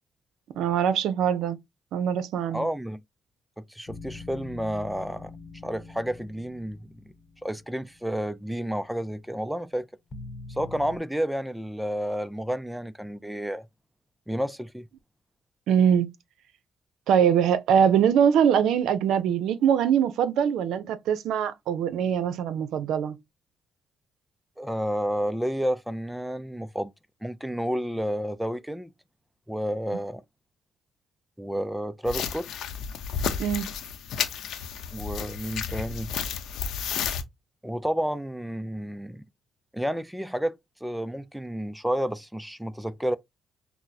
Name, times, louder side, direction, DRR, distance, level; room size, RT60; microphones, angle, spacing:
voice 1, 0.6-1.6 1.9-2.7 15.7-16.1 17.1-23.2 33.4-33.7, right 8 dB, 85° right, 0.5 m, -23 dB
voice 2, 2.5-3.0 3.6-5.3 5.6-6.9 7.4-9.9 10.5-13.7 14.3-14.9 24.6-26.9 27.2-28.9 29.5-30.2 31.4-32.5 34.9-36.1 37.6-39.2 39.7-43.2, equal, 5° right, 0.3 m, -30 dB
sound 1, 3.9-9.0 10.1-11.0, left 3 dB, 35° left, 0.9 m, -44 dB
sound 2, 32.1-37.2, left 7 dB, 80° left, 0.6 m, -32 dB
5.9 x 2.0 x 2.6 m
cardioid pair, 90°, 0 cm